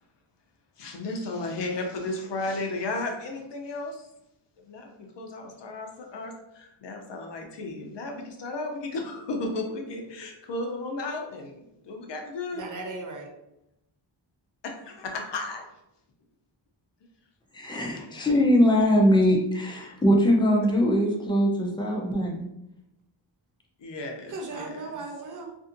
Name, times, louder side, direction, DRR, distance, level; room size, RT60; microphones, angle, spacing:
voice 1, 0.8-4.1 4.7-12.7 14.6-15.6 17.8-18.3 23.8-25.0, left 2 dB, 60° left, 2 dB, 0.6 m, -34 dB
voice 2, 12.5-13.3 24.3-25.5, right 3 dB, 40° right, 2 dB, 0.5 m, -37 dB
voice 3, 17.5-22.5, equal, 10° left, 0 dB, 0.4 m, -22 dB
2.6 x 2.6 x 2.5 m, 0.85 s
wide cardioid pair, 110°, 49 cm